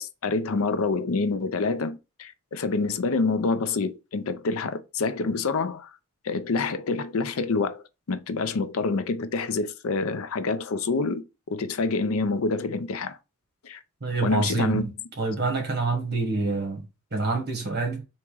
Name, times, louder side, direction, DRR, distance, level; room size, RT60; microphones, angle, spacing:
voice 1, 0.0-5.9 6.2-13.2 13.6-13.8 14.2-14.8, left 4 dB, 70° left, 0.5 m, -27 dB
voice 2, 14.0-18.1, right 3 dB, 45° right, 1.3 m, -27 dB
3.5 x 3.0 x 4.5 m
head